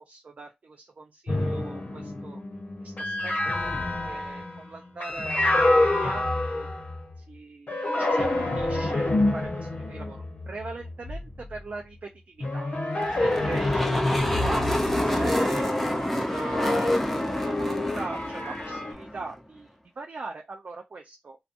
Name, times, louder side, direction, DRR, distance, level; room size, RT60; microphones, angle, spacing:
voice 1, 0.0-2.4 2.8-3.7 4.1-6.7 7.3-12.7 13.2-15.7 16.2-17.0 17.4-19.7 20.0-21.4, right 3 dB, 65° right, 2 dB, 0.5 m, -41 dB
sound 1, 1.3-7.2 7.7-11.6 12.4-18.9, left 2 dB, 65° left, 0.9 m, -27 dB
sound 2, 13.0-19.4, equal, 5° left, 0.5 m, -29 dB
2.7 x 2.3 x 2.5 m, 0.19 s
wide cardioid pair, 105°, 3 cm